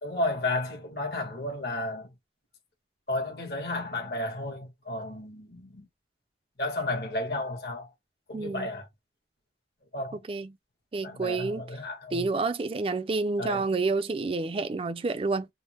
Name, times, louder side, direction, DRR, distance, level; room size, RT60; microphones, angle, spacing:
voice 1, 0.0-2.1 3.1-5.9 6.6-7.9 8.3-8.8 9.9-10.2 11.0-12.3 13.4-13.7, left 2 dB, 65° left, 1.3 m, -32 dB
voice 2, 8.3-8.7 10.1-10.6 10.9-11.7 12.1-15.5, right 3 dB, 30° right, 0.4 m, -29 dB
3.4 x 2.1 x 2.9 m
head